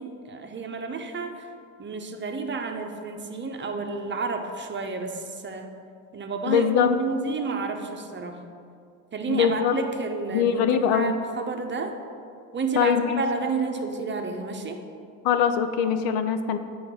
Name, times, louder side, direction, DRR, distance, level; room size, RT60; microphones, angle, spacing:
voice 1, 0.0-1.5 1.8-5.7 6.1-8.4 9.1-12.0 12.5-14.8, right 3 dB, 30° right, 4 dB, 0.8 m, -30 dB
voice 2, 6.5-7.0 9.3-9.8 10.3-11.1 12.8-13.2 15.2-16.6, left 8 dB, 70° left, 10 dB, 0.6 m, -22 dB
7.7 x 3.9 x 5.9 m, 2.4 s
supercardioid pair, 80°, 40 cm